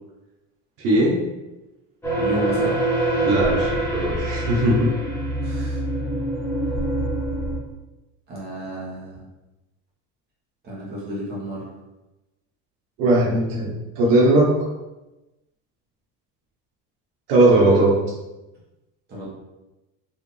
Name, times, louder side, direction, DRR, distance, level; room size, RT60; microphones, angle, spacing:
voice 1, 0.8-1.2 3.2-4.9 13.0-14.7 17.3-18.0, right 1 dB, 80° right, -2 dB, 1.2 m, -18 dB
sound 1, 2.0-7.6, right 1 dB, 5° left, 1.0 m, -24 dB
voice 2, 2.2-2.9 5.4-5.8 8.3-9.2 10.6-11.6 19.1-19.3, equal, 30° right, -6 dB, 1.3 m, -32 dB
4.6 x 2.8 x 3.3 m, 1.0 s
cardioid pair, 175°, 35 cm